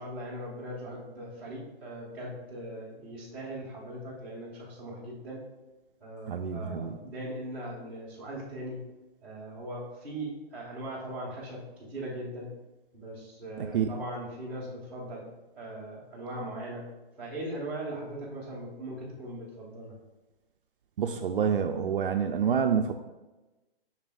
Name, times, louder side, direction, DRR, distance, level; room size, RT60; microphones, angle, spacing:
voice 1, 0.0-5.4 6.0-8.8 9.2-12.5 12.9-15.3 15.5-16.8 17.2-20.0, right 1 dB, 5° right, -11 dB, 1.6 m, -39 dB
voice 2, 6.3-7.0 13.6-13.9 21.0-22.9, right 7 dB, 60° right, 5 dB, 0.5 m, -28 dB
7.3 x 5.9 x 2.4 m, 1.1 s
hypercardioid pair, 175°, 31 cm